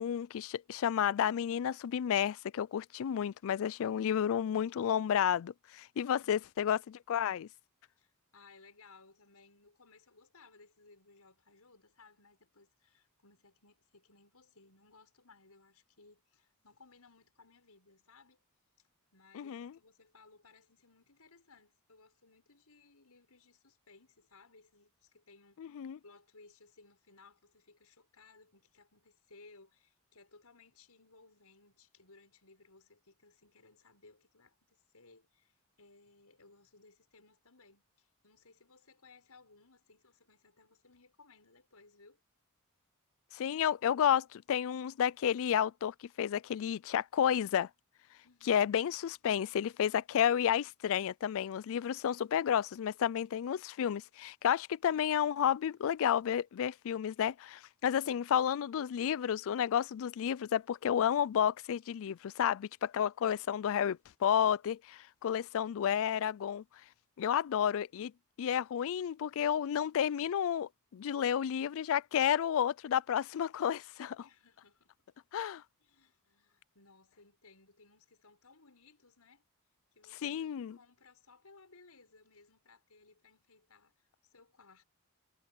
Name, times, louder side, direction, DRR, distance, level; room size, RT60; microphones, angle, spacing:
voice 1, 0.0-7.5 19.3-19.7 25.6-26.0 43.3-47.7 48.5-66.6 67.2-68.1 68.4-74.2 75.3-75.6 80.2-80.8, left 9 dB, 65° left, 0.3 m, -31 dB
voice 2, 6.0-6.5 8.0-18.4 19.1-25.7 26.0-42.2 48.2-48.7 74.2-74.9 75.8-79.4 79.9-84.8, left 3 dB, 85° left, 6.7 m, -62 dB
head